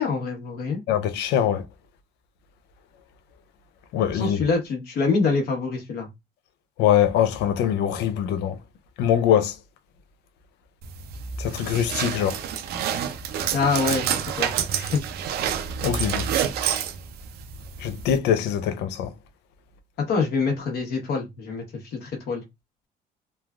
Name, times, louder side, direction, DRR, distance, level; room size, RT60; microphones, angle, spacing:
voice 1, 0.0-0.8 4.1-6.1 13.5-15.0 20.1-21.6 21.9-22.4, left 4 dB, 65° left, 1.2 m, -25 dB
voice 2, 0.9-1.6 3.9-4.4 6.8-8.6 9.0-9.5 11.4-12.4 15.8-16.2 17.8-19.1, left 9 dB, 85° left, 0.5 m, -22 dB
sound 1, 10.8-18.2, right 8 dB, 70° right, 0.5 m, -28 dB
3.2 x 2.3 x 2.4 m
cardioid pair, 110°, 17 cm